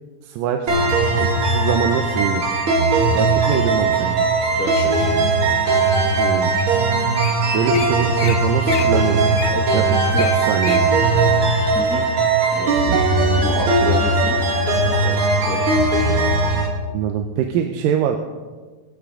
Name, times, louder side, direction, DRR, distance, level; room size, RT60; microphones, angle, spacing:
voice 1, 0.2-0.8 1.2-2.5 3.2-4.2 6.2-6.5 7.5-11.0 12.9-13.0 16.9-18.2, right 8 dB, 85° right, 5 dB, 2.4 m, -24 dB
sound 1, 0.7-16.7, right 3 dB, 45° right, 2.1 m, -18 dB
Wild animals, 0.9-1.6 2.3-2.6 3.1-3.6 4.1-5.0 5.6-5.7 6.3-6.4 6.6-6.8 7.0-7.3 7.7-7.9 8.2-8.4 8.7-10.8 11.3-11.4, left 10 dB, 85° left, 2.6 m, -32 dB
voice 2, 4.5-5.1 10.1-10.5 11.7-12.0 12.5-12.8 13.1-14.5 14.8-15.7, equal, 5° left, -4 dB, 0.4 m, -30 dB
24.5 x 8.5 x 3.7 m, 1.4 s
omnidirectional pair, 4.0 m